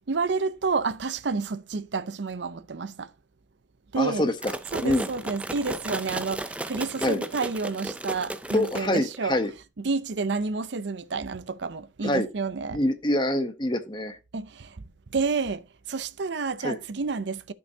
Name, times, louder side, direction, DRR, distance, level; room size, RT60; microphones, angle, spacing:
voice 1, 0.1-3.1 3.9-4.3 4.7-9.4 9.8-12.8 14.3-14.8 15.1-17.5, right 4 dB, 75° right, 0.6 m, -30 dB
voice 2, 4.0-4.5 4.8-5.1 7.0-7.2 8.5-9.5 12.0-12.3 12.7-14.2 16.6-16.8, left 1 dB, 25° left, 0.9 m, -25 dB
sound 1, 4.4-9.3, right 1 dB, 5° right, 0.4 m, -35 dB
12.5 x 5.6 x 2.8 m
head